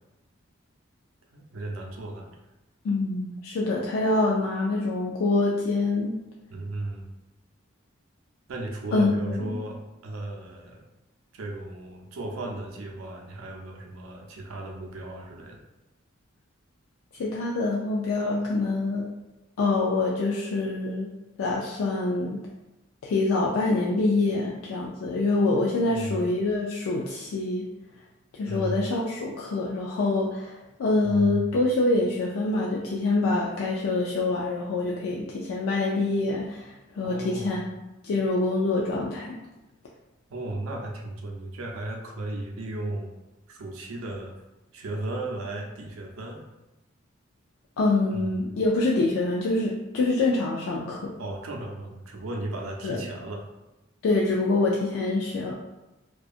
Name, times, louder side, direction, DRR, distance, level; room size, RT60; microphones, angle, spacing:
voice 1, 1.3-2.4 6.5-7.1 8.5-10.8 11.3-15.6 25.8-26.2 28.5-28.8 31.0-31.5 37.0-37.6 40.3-43.1 43.5-44.3 44.7-46.4 48.1-48.6 51.2-53.5, right 2 dB, 80° right, 0 dB, 0.5 m, -35 dB
voice 2, 2.8-6.2 8.9-9.6 17.1-19.0 19.6-21.1 21.4-22.4 23.0-27.6 28.3-37.8 38.0-39.4 47.8-51.1 52.8-53.0 54.0-55.5, left 2 dB, 80° left, -3 dB, 0.3 m, -25 dB
2.7 x 2.2 x 2.4 m, 1.0 s
head